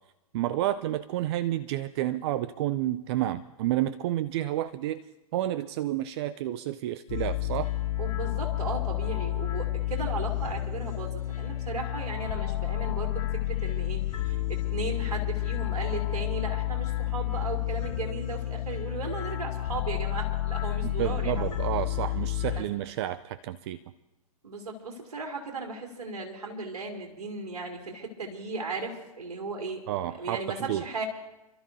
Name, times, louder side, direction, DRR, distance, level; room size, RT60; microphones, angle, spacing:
voice 1, 0.3-5.0 5.3-7.7 20.8-23.8 29.9-30.8, right 13 dB, 45° right, 15 dB, 0.5 m, -30 dB
sound 1, 7.1-22.6, left 14 dB, 65° left, 4.4 m, -30 dB
voice 2, 8.0-21.6 22.5-22.6 24.4-31.0, right 3 dB, 75° right, 1 dB, 3.1 m, -36 dB
29.5 x 13.0 x 2.7 m, 0.98 s
hypercardioid pair, 115°, 20 cm